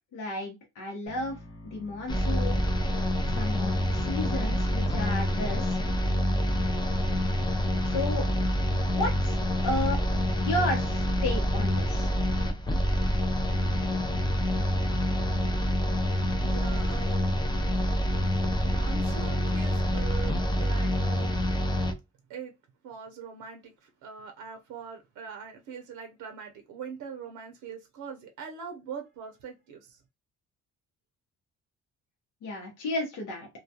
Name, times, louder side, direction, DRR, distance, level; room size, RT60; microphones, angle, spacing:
voice 1, 0.1-1.4 1.6-2.6 3.4-5.8 7.9-8.3 8.9-10.0 10.4-12.1 32.4-33.5, left 1 dB, 85° left, 0.9 m, -33 dB
sound 1, 1.1-7.1, equal, 45° left, 0.8 m, -51 dB
sound 2, 2.1-21.9, equal, 15° left, 0.4 m, -27 dB
voice 2, 16.4-17.4 18.6-21.3 22.3-22.5 22.8-30.0, right 6 dB, 80° right, 0.6 m, -42 dB
2.3 x 2.2 x 2.7 m
cardioid pair, 90°, 30 cm